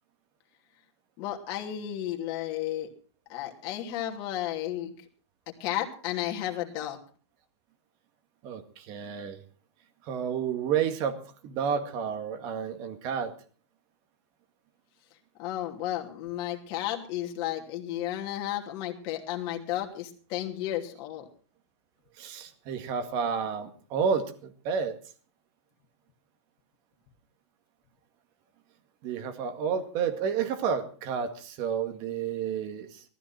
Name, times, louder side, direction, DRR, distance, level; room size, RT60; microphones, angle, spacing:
voice 1, 1.2-2.9 3.3-4.9 5.6-7.0 15.4-21.3, left 12 dB, 30° left, 1 dB, 2.9 m, -33 dB
voice 2, 8.4-9.4 10.1-13.3 22.2-25.0 29.0-33.0, right 7 dB, 30° right, 8 dB, 1.9 m, -30 dB
18.5 x 14.0 x 4.4 m, 0.41 s
supercardioid pair, 165°, 14 cm